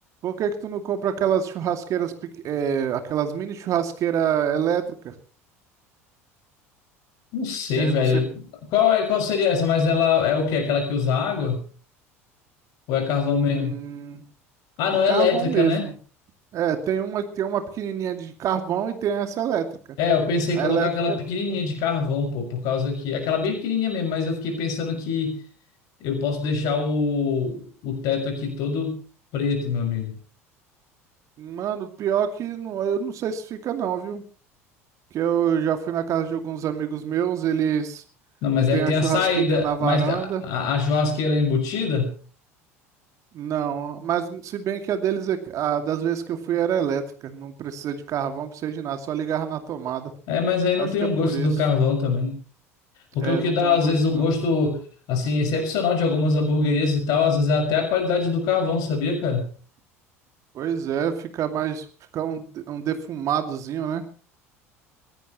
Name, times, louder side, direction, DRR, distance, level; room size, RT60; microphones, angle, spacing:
voice 1, 0.2-2.1 2.4-5.1 7.8-8.2 13.3-14.2 15.1-15.9 16.5-20.0 20.5-21.2 31.4-34.2 35.1-38.0 38.7-40.4 43.3-50.1 50.8-51.5 53.2-54.3 60.5-61.9 62.1-64.0, right 8 dB, 45° right, 7 dB, 2.4 m, -26 dB
voice 2, 7.3-8.3 8.7-11.6 12.9-13.8 14.8-15.9 20.0-25.4 26.0-29.0 29.3-30.1 38.4-42.1 50.3-52.4 53.1-54.8 55.1-59.5, left 5 dB, 55° left, 7 dB, 6.1 m, -23 dB
23.5 x 17.0 x 3.1 m, 0.40 s
figure-of-eight pair, 70°, 8 cm